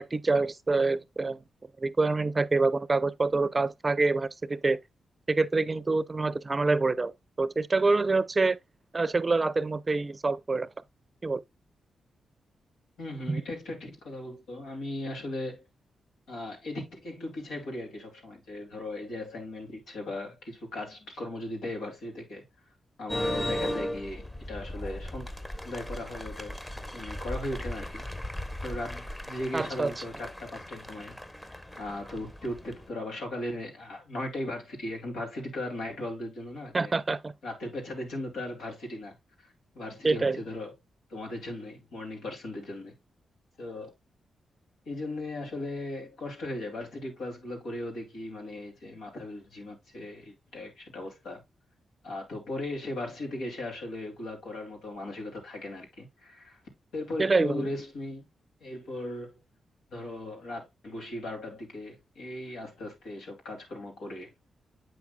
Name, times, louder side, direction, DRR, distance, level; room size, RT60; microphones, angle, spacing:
voice 1, 0.0-1.4 1.8-4.8 5.3-7.1 7.4-8.6 8.9-10.7 11.2-11.4 13.3-13.4 29.5-29.9 36.7-37.3 40.0-40.4 57.2-57.6, right 3 dB, 35° right, 0.5 m, -26 dB
voice 2, 13.0-15.6 16.3-22.4 23.0-25.3 25.6-26.6 26.9-28.0 28.6-31.1 31.5-36.9 37.4-40.7 41.1-42.9 43.6-43.9 44.9-51.4 52.0-56.6 56.9-58.2 58.6-59.4 59.9-64.3, left 1 dB, 85° left, 2.5 m, -38 dB
sound 1, 23.1-32.9, left 1 dB, 15° left, 1.1 m, -37 dB
7.8 x 6.0 x 2.2 m
supercardioid pair, 50°, 0 cm